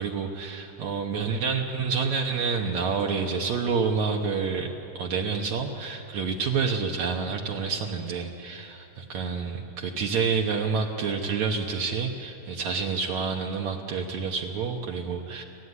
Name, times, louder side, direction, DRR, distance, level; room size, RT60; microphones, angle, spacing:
voice 1, 0.0-15.4, right 5 dB, 65° right, 1 dB, 2.2 m, -28 dB
29.0 x 12.5 x 9.8 m, 2.9 s
omnidirectional pair, 3.7 m